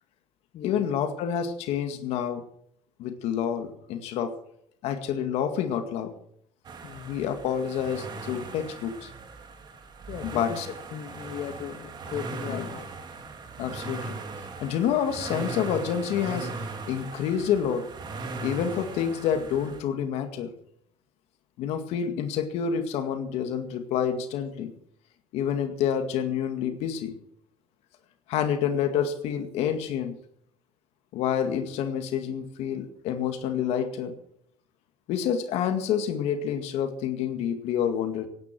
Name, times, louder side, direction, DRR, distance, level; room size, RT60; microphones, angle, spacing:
voice 1, 0.6-2.4 3.0-4.3 4.8-6.1 7.0-9.1 10.2-10.7 12.5-12.7 13.6-14.2 14.6-16.5 16.9-17.8 18.4-20.5 21.6-24.7 25.3-27.2 28.3-30.2 31.1-34.1 35.1-38.3, left 8 dB, 80° left, 7 dB, 2.1 m, -28 dB
sound 1, 6.6-19.8, right 3 dB, 45° right, 2.7 m, -39 dB
voice 2, 6.8-7.2 10.1-10.6 10.9-12.9, left 9 dB, 60° left, 9 dB, 1.4 m, -37 dB
17.0 x 9.9 x 6.1 m, 0.69 s
cardioid pair, 120°, 11 cm